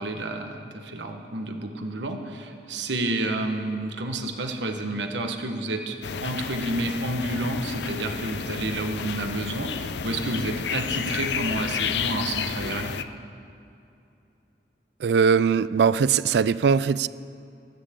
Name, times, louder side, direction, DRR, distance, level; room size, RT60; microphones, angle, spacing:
voice 1, 0.0-12.9, right 2 dB, 90° right, 5 dB, 1.3 m, -30 dB
sound 1, 6.0-13.0, left 6 dB, 75° left, 0.5 m, -31 dB
voice 2, 15.0-17.1, right 6 dB, 65° right, 17 dB, 0.3 m, -20 dB
22.5 x 12.0 x 3.7 m, 2.7 s
head